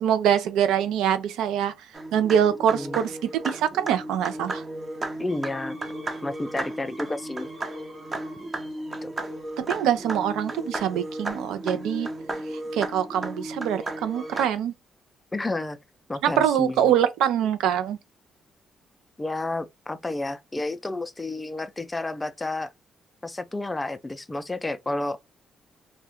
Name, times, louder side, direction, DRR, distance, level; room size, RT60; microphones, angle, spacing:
voice 1, 0.0-1.7 2.1-4.6 9.6-12.1 12.7-14.7 16.2-18.0, right 9 dB, 90° right, 0.4 m, -24 dB
sound 1, 1.9-14.5, right 1 dB, 30° right, 0.6 m, -34 dB
voice 2, 2.7-3.0 5.2-5.8 6.2-7.5 9.0-9.1 15.3-15.8 16.1-16.9 19.2-22.7 23.2-25.2, left 2 dB, 15° left, 0.3 m, -31 dB
2.4 x 2.1 x 2.8 m
cardioid pair, 90°, 0 cm